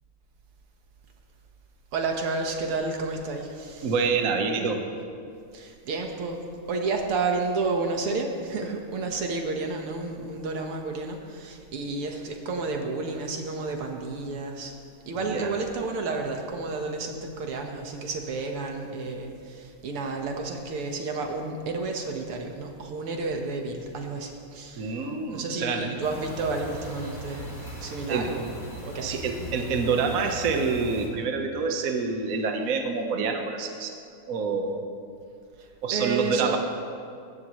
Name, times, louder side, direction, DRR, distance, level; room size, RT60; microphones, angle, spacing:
voice 1, 1.9-3.9 5.5-14.8 15.1-27.6 27.8-28.5 28.8-29.2 35.6-36.6, right 3 dB, 85° right, 2 dB, 2.3 m, -31 dB
voice 2, 3.8-4.8 15.2-15.5 24.8-25.9 28.1-28.3 29.0-33.9 34.3-34.8 35.8-36.6, right 4 dB, 45° right, 4 dB, 1.4 m, -27 dB
sound 1, 26.0-31.1, right 1 dB, 20° left, 2.8 m, -39 dB
20.5 x 16.0 x 3.2 m, 2.3 s
omnidirectional pair, 2.4 m